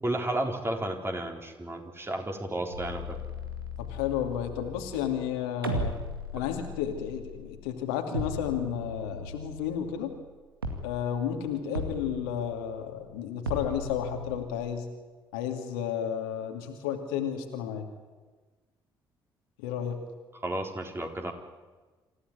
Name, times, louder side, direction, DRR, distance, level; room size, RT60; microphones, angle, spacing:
voice 1, 0.0-3.2 6.4-6.5 20.4-21.3, right 1 dB, 20° right, 3 dB, 4.0 m, -32 dB
sound 1, 2.7-5.3 5.6-7.7 8.1-10.3 10.6-11.3 11.7-13.0 13.5-14.4, left 1 dB, 85° right, 2.1 m, -37 dB
voice 2, 3.8-5.9 6.3-10.1 10.8-14.8 15.3-17.9 19.6-20.0, left 9 dB, 70° left, 4 dB, 2.7 m, -32 dB
27.0 x 16.0 x 9.9 m, 1.3 s
figure-of-eight pair, 45°, 12 cm